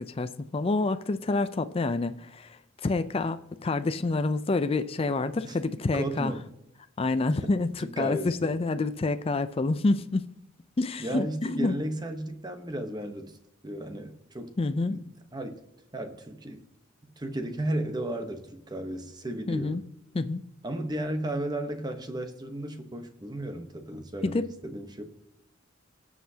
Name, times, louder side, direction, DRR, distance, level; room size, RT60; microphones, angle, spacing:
voice 1, 0.0-6.3 7.0-10.2 10.8-11.7 14.6-15.0 19.5-19.8 20.1-20.4 24.2-24.5, left 3 dB, 30° left, 0.4 m, -28 dB
voice 2, 5.9-6.4 7.3-7.4 7.8-8.5 11.0-13.4 13.6-14.6 14.8-15.0 15.3-15.6 15.9-16.7 17.2-19.8 20.6-25.0, right 1 dB, 20° right, 1.0 m, -34 dB
17.5 x 7.5 x 2.8 m
head